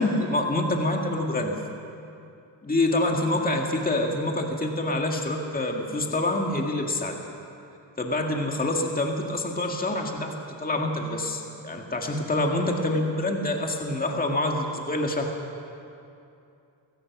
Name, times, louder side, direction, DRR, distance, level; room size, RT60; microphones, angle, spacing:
voice 1, 0.0-1.6 2.6-7.1 8.0-15.3, left 1 dB, 20° left, 2 dB, 2.0 m, -26 dB
25.5 x 17.0 x 6.1 m, 2.6 s
cardioid pair, 105°, 45 cm